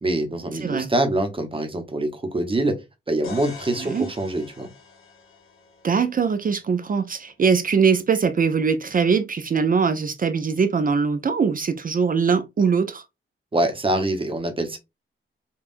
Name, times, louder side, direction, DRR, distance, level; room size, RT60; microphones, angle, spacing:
voice 1, 0.0-2.7 3.1-4.7 13.5-14.8, right 1 dB, 25° right, 0.8 m, -24 dB
sound 1, 3.2-7.1, left 5 dB, 80° left, 1.4 m, -44 dB
voice 2, 5.8-13.0, right 5 dB, 40° right, 0.4 m, -22 dB
5.4 x 2.3 x 2.5 m
wide cardioid pair, 150°, 21 cm